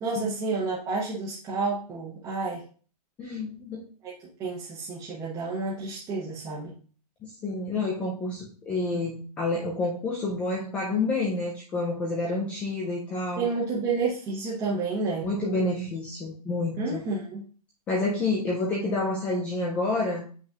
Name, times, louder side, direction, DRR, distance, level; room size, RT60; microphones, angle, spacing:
voice 1, 0.0-2.6 4.0-4.1 4.4-6.7 13.4-15.3 16.8-17.4, right 3 dB, 15° right, -7 dB, 1.0 m, -30 dB
voice 2, 3.2-3.8 7.2-13.4 15.2-17.0 17.9-20.2, left 2 dB, 5° left, -4 dB, 0.3 m, -29 dB
7.4 x 5.5 x 2.3 m, 0.40 s
hypercardioid pair, 155°, 21 cm